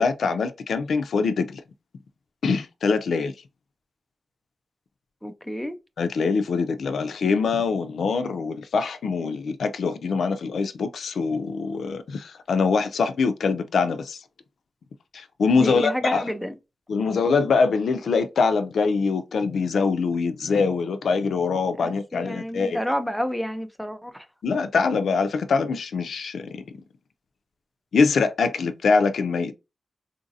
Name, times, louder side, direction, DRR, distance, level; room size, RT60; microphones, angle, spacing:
voice 1, 0.0-1.6 2.4-3.3 6.0-14.2 15.1-16.3 16.9-22.8 24.4-26.6 27.9-29.5, left 4 dB, 85° left, 0.4 m, -23 dB
voice 2, 5.2-5.8 15.5-16.5 21.8-24.2, equal, ahead, 0.4 m, -29 dB
3.9 x 2.5 x 2.6 m
wide cardioid pair, 130°, 0 cm